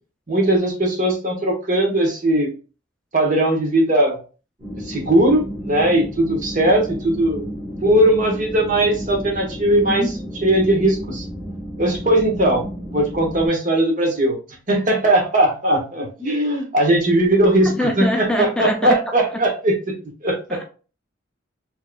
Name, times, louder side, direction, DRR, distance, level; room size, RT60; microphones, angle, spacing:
voice 1, 0.3-2.5 3.1-4.2 4.8-7.4 7.8-11.2 11.8-14.4 14.7-19.9 20.2-20.6, right 1 dB, 45° right, 1 dB, 1.4 m, -19 dB
sound 1, 4.6-13.5, equal, 20° right, 1.8 m, -32 dB
voice 2, 9.7-10.1 17.8-19.0, left 1 dB, 5° left, 2 dB, 0.4 m, -23 dB
4.6 x 3.0 x 2.3 m, 0.35 s
head